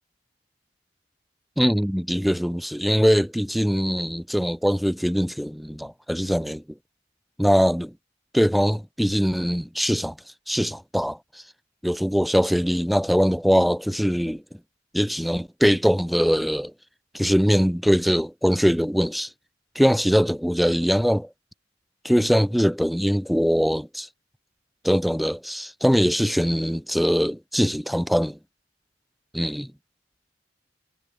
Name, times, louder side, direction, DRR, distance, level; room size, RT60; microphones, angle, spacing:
voice 1, 1.6-6.6 7.4-7.9 8.3-10.1 10.5-11.2 11.8-14.4 14.9-16.7 17.1-19.3 19.7-21.3 22.0-24.1 24.8-28.4 29.3-29.7, equal, ahead, 1.2 m, -22 dB
head